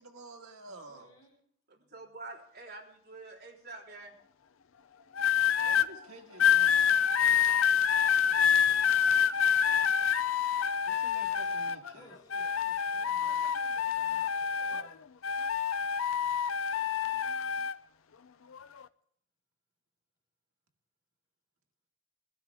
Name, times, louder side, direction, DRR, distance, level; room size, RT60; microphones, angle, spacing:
voice 1, 0.0-1.1 5.6-7.1 8.2-9.1 10.9-12.1, right 2 dB, 90° right, 3 dB, 2.0 m, -51 dB
voice 2, 0.7-1.3 11.9-15.0, left 1 dB, 20° left, -7 dB, 5.0 m, -59 dB
voice 3, 1.7-4.1, right 3 dB, 50° right, -3 dB, 3.5 m, -47 dB
sound 1, 5.2-5.9 6.4-11.9 12.3-14.9 15.2-17.8 18.5-18.8, left 8 dB, 75° left, 0.5 m, -27 dB
21.5 x 12.5 x 3.5 m, 0.64 s
head